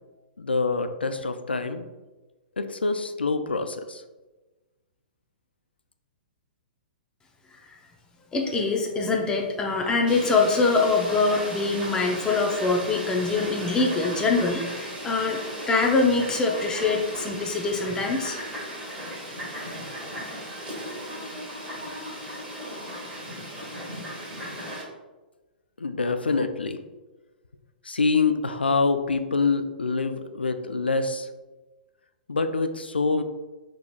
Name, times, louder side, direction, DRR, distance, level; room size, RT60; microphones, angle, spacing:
voice 1, 0.4-1.8 2.6-4.0 25.8-26.8 27.8-31.3 32.3-33.2, left 4 dB, 85° left, 9 dB, 0.3 m, -25 dB
voice 2, 8.3-15.4 15.7-18.4, left 3 dB, 15° left, 1 dB, 0.5 m, -24 dB
Fowl, 10.1-24.8, equal, 15° right, 1.5 m, -36 dB
5.0 x 3.0 x 2.2 m, 1.2 s
figure-of-eight pair, 115°, 5 cm